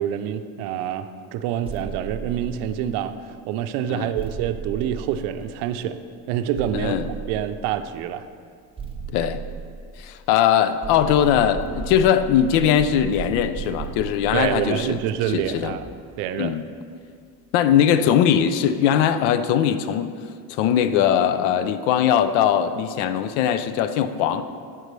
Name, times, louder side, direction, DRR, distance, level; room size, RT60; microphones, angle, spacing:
voice 1, 0.0-6.0 6.3-7.0 7.3-8.3 14.3-15.9 16.2-16.6, right 10 dB, 75° right, 10 dB, 0.6 m, -27 dB
sound 1, 1.6-3.1 4.2-5.8 6.5-7.9 8.8-10.4 10.8-16.1, right 7 dB, 15° right, 0.9 m, -36 dB
voice 2, 6.7-7.1 9.1-9.4 10.0-15.0 15.3-15.8 16.4-16.6 17.5-20.2 20.5-24.4, left 9 dB, 80° left, 11 dB, 0.6 m, -20 dB
9.0 x 6.6 x 3.2 m, 2.1 s
cardioid pair, 120°, 41 cm